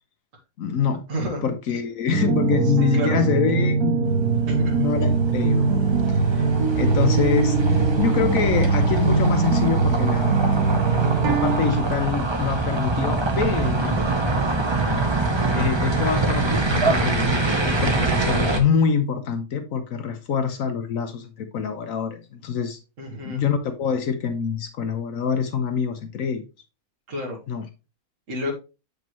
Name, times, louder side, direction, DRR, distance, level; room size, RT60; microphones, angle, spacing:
voice 1, 0.6-1.0 1.4-4.2 4.8-6.5 6.7-10.6 11.2-14.0 15.5-22.8 23.2-26.4 27.5-27.6, left 7 dB, 70° left, 1.2 m, -25 dB
voice 2, 1.1-1.5 2.7-3.2 4.5-4.9 13.6-14.1 23.0-23.4 27.1-27.4 28.3-28.5, equal, 60° right, 1.8 m, -30 dB
sound 1, 2.1-11.9, right 4 dB, 90° right, 1.3 m, -21 dB
sound 2, 4.1-18.6, right 2 dB, 25° right, 0.8 m, -25 dB
7.7 x 5.3 x 3.0 m
omnidirectional pair, 1.5 m